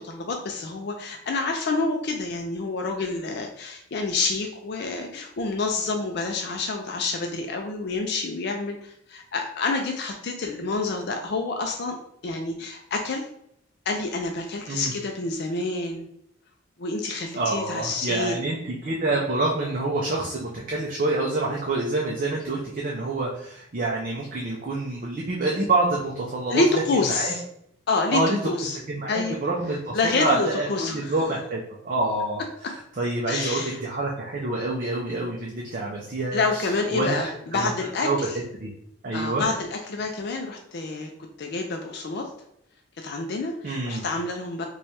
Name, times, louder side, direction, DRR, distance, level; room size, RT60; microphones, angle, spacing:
voice 1, 0.0-12.0 12.2-13.2 13.9-16.1 16.8-18.3 26.5-27.4 27.9-28.8 29.1-29.4 29.9-31.1 33.3-33.8 36.3-38.4 39.1-41.1 41.4-42.2 43.0-44.7, left 3 dB, 50° left, 3 dB, 0.4 m, -28 dB
voice 2, 17.3-26.6 26.9-27.3 28.1-28.4 28.9-32.4 33.0-36.6 36.9-37.7 38.0-38.2 38.6-38.7 39.0-39.4 43.6-44.0, right 2 dB, 40° right, -2 dB, 0.5 m, -27 dB
3.1 x 2.3 x 4.1 m, 0.73 s
head